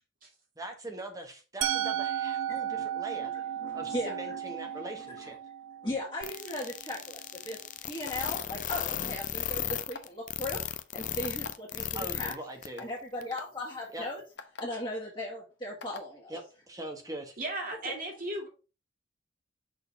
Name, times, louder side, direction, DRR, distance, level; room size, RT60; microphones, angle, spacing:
voice 1, 0.6-3.3 3.7-5.4 11.9-12.8 13.9-14.0 16.3-16.4 16.7-17.4, right 1 dB, 15° right, 4 dB, 1.2 m, -41 dB
Musical instrument, 1.6-7.5, right 10 dB, 85° right, 0.8 m, -35 dB
voice 2, 3.6-4.4 4.8-4.9 5.8-7.6 7.8-12.3 12.8-14.2 14.6-16.4 17.8-18.0, left 1 dB, 25° left, -4 dB, 1.9 m, -37 dB
sound 1, 6.2-12.3 12.6-12.7 13.2-13.3, left 10 dB, 40° left, 0.5 m, -35 dB
sound 2, 8.0-8.5 9.7-10.1 11.2-11.5 12.2-12.3 12.8-12.9 13.3-13.4 14.4-14.6 15.8-16.1, left 3 dB, 60° left, 0.9 m, -43 dB
voice 3, 17.4-18.5, right 1 dB, 45° right, 0 dB, 2.4 m, -35 dB
6.1 x 3.9 x 5.2 m, 0.32 s
head